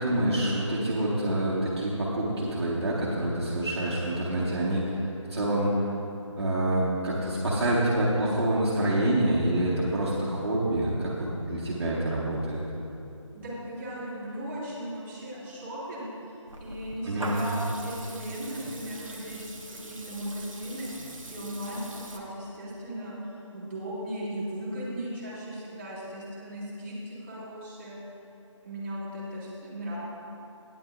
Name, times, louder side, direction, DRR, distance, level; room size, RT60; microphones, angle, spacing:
voice 1, 0.0-5.9 6.4-12.6 17.0-17.3, right 1 dB, 55° right, -7 dB, 2.1 m, -27 dB
voice 2, 13.3-20.9 21.3-28.0 28.6-30.0, equal, 25° right, -10 dB, 2.8 m, -37 dB
Water tap faucet / Liquid, 16.5-22.2, right 1 dB, 85° right, 1.5 m, -41 dB
15.5 x 10.5 x 2.7 m, 2.8 s
figure-of-eight pair, 165°, 17 cm